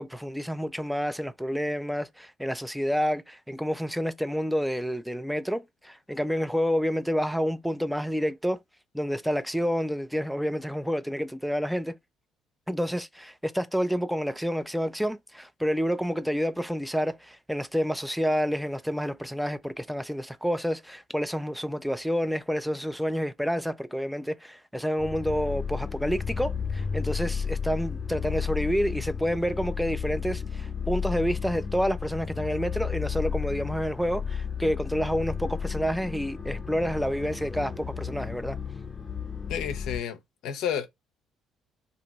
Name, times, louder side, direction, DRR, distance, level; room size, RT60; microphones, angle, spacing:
voice 1, 0.0-8.6 8.9-11.9 12.7-38.6, equal, ahead, 0.4 m, -29 dB
sound 1, 25.0-40.0, left 6 dB, 35° left, 0.8 m, -33 dB
voice 2, 39.5-40.2 40.4-40.9, left 9 dB, 70° left, 0.5 m, -30 dB
2.8 x 2.6 x 2.8 m
hypercardioid pair, 55°, 0 cm